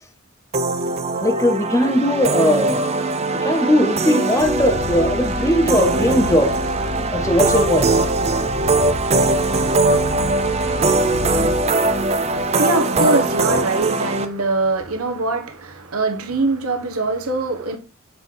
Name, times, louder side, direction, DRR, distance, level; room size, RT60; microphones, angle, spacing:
sound 1, 0.5-14.3, right 2 dB, 30° right, 0.5 m, -21 dB
voice 1, 1.2-2.9 3.3-6.6 7.1-8.0, left 1 dB, 15° left, 0.6 m, -19 dB
Purr, 4.4-12.5, left 2 dB, 70° left, 1.2 m, -30 dB
voice 2, 11.6-17.8, right 3 dB, 80° right, 1.3 m, -23 dB
6.7 x 4.7 x 3.7 m
head